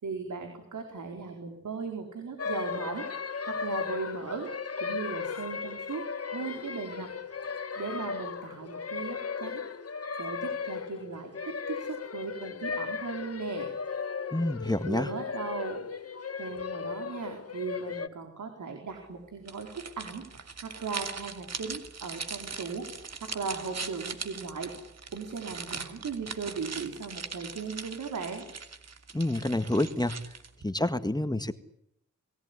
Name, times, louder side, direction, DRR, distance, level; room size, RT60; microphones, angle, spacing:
voice 1, 0.0-3.1 3.4-4.5 4.8-6.1 6.3-7.1 7.8-9.7 10.2-13.7 14.8-24.7 25.1-28.5, right 5 dB, 85° right, 4 dB, 4.7 m, -38 dB
sound 1, 2.4-18.1, left 5 dB, 55° left, 1.8 m, -36 dB
voice 2, 14.3-15.1 29.1-30.2 30.6-31.5, left 1 dB, 15° left, 10 dB, 1.8 m, -28 dB
sound 2, 19.4-30.6, right 5 dB, 60° right, 2.9 m, -41 dB
29.5 x 19.0 x 9.9 m, 0.78 s
cardioid pair, 65°, 29 cm